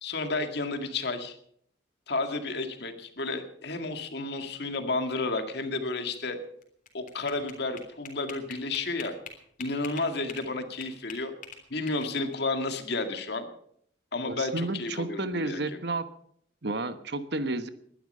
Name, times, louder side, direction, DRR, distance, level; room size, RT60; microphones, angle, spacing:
voice 1, 0.0-1.4 2.1-6.4 6.9-9.1 9.6-11.3 11.7-13.5 14.1-15.8, left 3 dB, 65° left, 6 dB, 2.0 m, -32 dB
sound 1, 6.6-10.5 10.8-12.3, left 6 dB, 45° left, 3.4 m, -44 dB
voice 2, 14.3-16.1 16.6-17.7, right 2 dB, 65° right, 11 dB, 1.2 m, -31 dB
20.5 x 11.5 x 5.5 m, 0.67 s
head